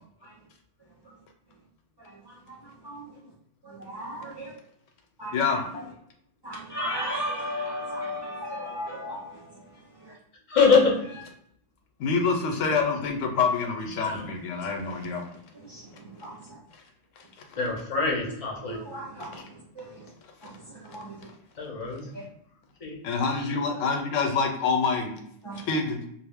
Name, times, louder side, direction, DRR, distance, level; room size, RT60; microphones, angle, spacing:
voice 1, 2.0-3.0 3.6-4.5 5.2-5.6 6.4-9.7 10.0-10.1 14.9-15.0 15.5-16.6 18.2-18.3 18.6-20.1 20.4-21.3 22.1-22.2 25.4-25.7, equal, 30° right, -5 dB, 0.5 m, -36 dB
voice 2, 10.5-11.0 14.0-14.2 17.6-18.8 21.6-22.1 22.8-23.0, left 5 dB, 40° left, -1 dB, 0.5 m, -23 dB
voice 3, 12.0-15.2 19.2-19.4 23.0-25.1 25.7-26.0, left 5 dB, 90° left, 3 dB, 0.9 m, -26 dB
2.3 x 2.0 x 3.4 m, 0.70 s
omnidirectional pair, 1.2 m